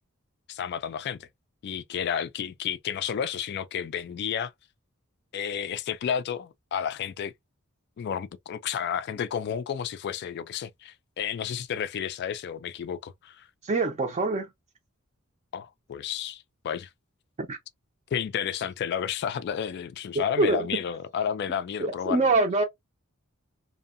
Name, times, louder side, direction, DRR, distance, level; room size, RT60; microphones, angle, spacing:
voice 1, 0.5-1.3 1.6-4.5 5.3-7.3 8.0-13.5 15.5-16.9 18.1-22.3, left 8 dB, 50° left, 0.3 m, -31 dB
voice 2, 13.6-14.5 17.4-17.6 20.4-20.7 21.8-22.6, right 3 dB, 30° right, 0.4 m, -24 dB
2.6 x 2.1 x 2.4 m
head